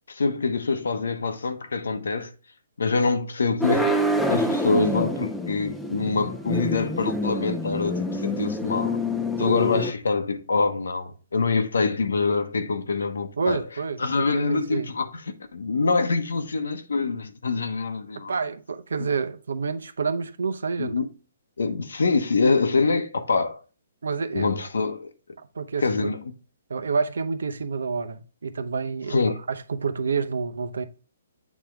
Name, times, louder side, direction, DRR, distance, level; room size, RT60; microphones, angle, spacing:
voice 1, 0.1-2.3 2.8-4.0 4.3-9.0 9.4-13.6 14.0-18.3 20.8-21.1 21.6-23.6 24.3-25.1 25.8-26.2 29.1-29.4, left 4 dB, 90° left, 1.1 m, -25 dB
sound 1, 3.6-9.9, left 1 dB, ahead, 0.5 m, -27 dB
voice 2, 13.4-14.9 18.3-21.0 24.0-24.5 25.5-26.2 26.7-29.2 29.5-30.8, right 5 dB, 85° right, 0.8 m, -28 dB
8.5 x 3.6 x 3.4 m
hypercardioid pair, 160°, 0 cm